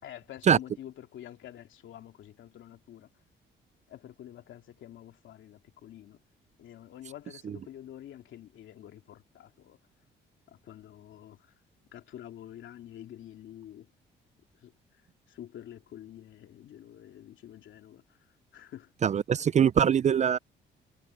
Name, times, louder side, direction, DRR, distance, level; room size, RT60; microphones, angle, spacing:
voice 1, 0.0-3.1 3.9-6.2 6.6-9.8 10.5-11.5 11.9-13.9 14.6-14.7 15.3-18.0 18.5-18.9, left 11 dB, 75° left, 2.7 m, -48 dB
voice 2, 19.0-20.4, right 8 dB, 35° right, 0.4 m, -23 dB
cardioid pair, 90°, 20 cm